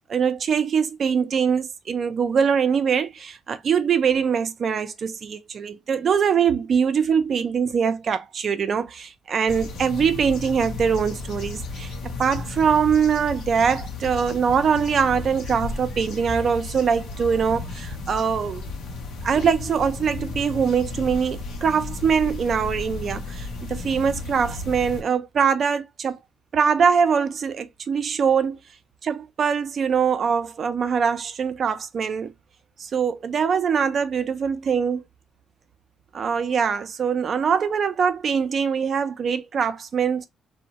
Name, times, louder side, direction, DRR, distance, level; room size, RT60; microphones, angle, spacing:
voice 1, 0.1-18.7 19.2-26.2 26.5-28.6 29.0-32.3 32.8-35.0 36.1-40.2, right 6 dB, 55° right, 0.4 m, -23 dB
sound 1, 9.5-25.0, left 3 dB, 80° left, 0.6 m, -34 dB
2.5 x 2.1 x 2.8 m
cardioid pair, 90°, 0 cm